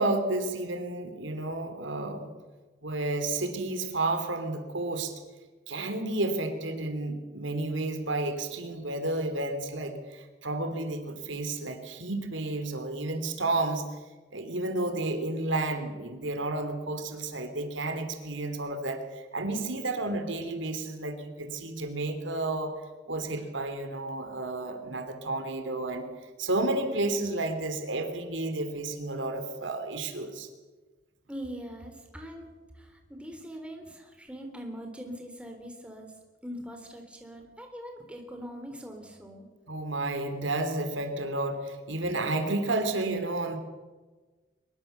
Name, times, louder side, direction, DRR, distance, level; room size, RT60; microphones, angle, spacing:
voice 1, 0.0-2.3 2.8-5.2 5.7-13.8 14.3-22.8 23.1-26.1 26.4-30.5 39.7-43.6, right 2 dB, 90° right, 7 dB, 3.3 m, -31 dB
voice 2, 31.3-36.1 36.4-39.5, equal, 5° right, 3 dB, 3.6 m, -42 dB
23.5 x 22.0 x 6.9 m, 1.3 s
head